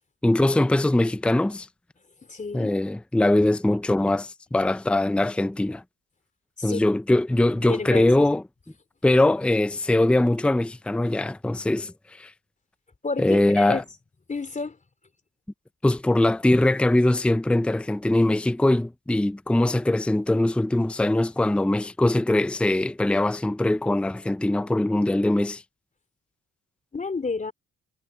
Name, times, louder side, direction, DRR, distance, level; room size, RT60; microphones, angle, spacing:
voice 1, 0.2-1.7 2.5-5.8 6.6-8.4 9.0-11.9 12.2-12.3 13.2-13.8 15.8-25.6, left 1 dB, 5° left, 0.7 m, -22 dB
voice 2, 2.3-2.7 6.6-6.9 7.5-8.2 13.0-13.8 14.3-14.8 26.9-27.5, left 4 dB, 25° left, 3.2 m, -30 dB
cardioid pair, 90°, 30 cm